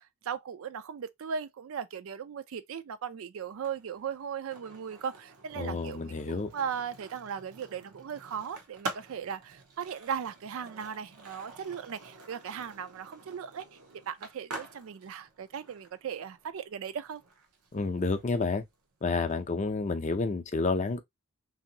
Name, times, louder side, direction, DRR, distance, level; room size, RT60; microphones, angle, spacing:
voice 1, 0.0-13.8 14.1-17.2, right 7 dB, 70° right, 0.4 m, -38 dB
Skateboard, 3.5-19.4, right 3 dB, 85° right, 0.8 m, -47 dB
voice 2, 5.6-6.5 17.7-18.6 19.0-21.0, left 3 dB, 30° left, 0.4 m, -30 dB
3.0 x 2.7 x 2.7 m
head